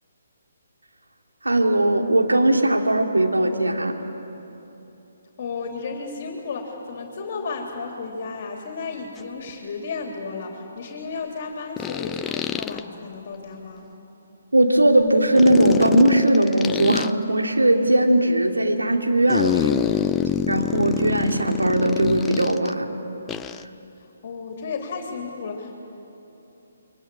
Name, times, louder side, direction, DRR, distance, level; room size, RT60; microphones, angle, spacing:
voice 1, 1.4-3.9 14.5-19.7 20.5-22.9, right 1 dB, 80° right, 2 dB, 3.0 m, -19 dB
voice 2, 5.4-13.9 24.0-25.8, left 4 dB, 40° left, 2 dB, 3.2 m, -33 dB
sound 1, 9.2-9.3 11.8-12.8 15.3-17.1 19.3-22.7 23.3-23.6, left 9 dB, 10° left, 0.5 m, -26 dB
28.5 x 23.5 x 8.7 m, 3.0 s
figure-of-eight pair, 135°, 0 cm